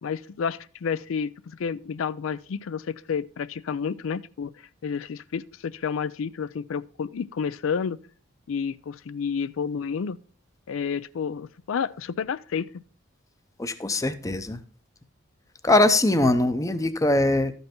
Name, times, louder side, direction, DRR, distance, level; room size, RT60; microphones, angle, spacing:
voice 1, 0.0-4.5 4.8-8.0 8.5-10.2 10.7-12.8, left 6 dB, 90° left, 0.4 m, -30 dB
voice 2, 13.6-14.6 15.6-17.5, left 2 dB, 15° left, 0.6 m, -22 dB
12.5 x 5.4 x 4.4 m
head